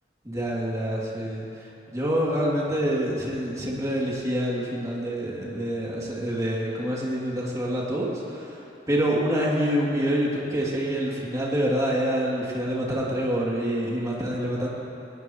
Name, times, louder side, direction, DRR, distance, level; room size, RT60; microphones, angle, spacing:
voice 1, 0.2-14.7, equal, 20° right, -5 dB, 2.9 m, -27 dB
22.5 x 20.0 x 3.2 m, 2.7 s
head